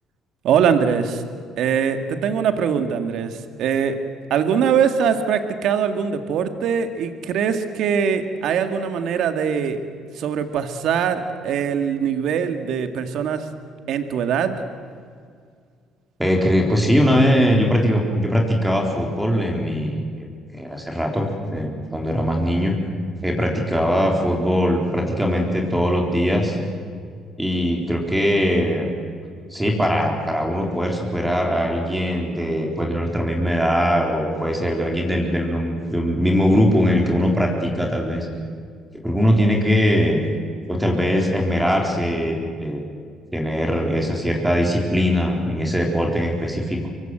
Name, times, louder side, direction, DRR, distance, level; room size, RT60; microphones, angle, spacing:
voice 1, 0.4-1.2 1.6-4.0 4.3-9.8 10.1-13.5 13.9-14.6, right 7 dB, 70° right, 8 dB, 2.0 m, -22 dB
voice 2, 16.2-20.0 20.5-22.8 23.2-26.6 27.4-28.9 29.5-38.3 39.0-40.2 40.7-42.8 43.3-46.9, equal, 5° right, 1 dB, 4.1 m, -21 dB
25.0 x 23.5 x 8.0 m, 2.1 s
cardioid pair, 105°, 0 cm